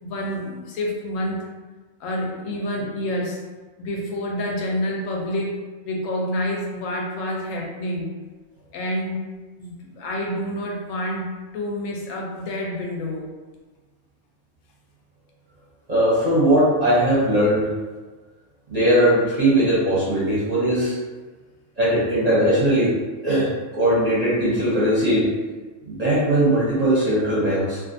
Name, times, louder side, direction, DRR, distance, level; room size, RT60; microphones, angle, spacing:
voice 1, 0.0-1.5 2.0-3.4 3.8-5.6 5.8-8.1 8.7-9.2 9.6-13.3, left 1 dB, 85° left, -1 dB, 1.0 m, -28 dB
voice 2, 15.9-17.7 18.7-21.0 21.8-23.0 23.2-25.3 25.9-27.8, right 1 dB, 40° right, -9 dB, 0.6 m, -19 dB
2.4 x 2.4 x 2.5 m, 1.3 s
omnidirectional pair, 1.3 m